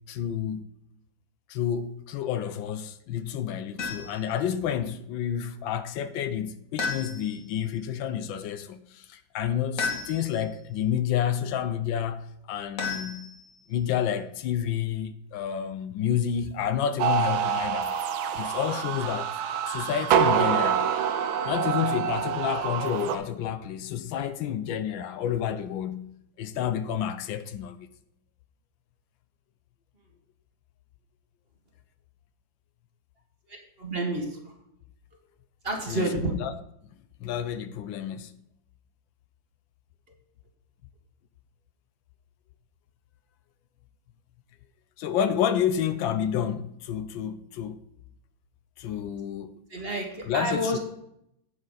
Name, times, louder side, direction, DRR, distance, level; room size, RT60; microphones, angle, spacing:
voice 1, 0.1-0.6 1.5-13.3 13.7-17.9 18.4-19.3 19.7-20.9 21.4-27.9 35.9-36.5 37.2-38.3 45.0-47.8 48.8-49.5 50.3-50.8, left 9 dB, 80° left, 1.4 m, -30 dB
sound 1, 3.8-4.3 6.8-7.5 9.8-10.5 12.8-13.7, left 4 dB, 45° left, 1.9 m, -33 dB
sound 2, 17.0-23.2, right 8 dB, 80° right, 1.5 m, -26 dB
voice 2, 33.5-34.5 35.6-36.3 49.7-50.8, right 1 dB, 30° right, 1.7 m, -29 dB
9.3 x 9.0 x 4.0 m
omnidirectional pair, 2.1 m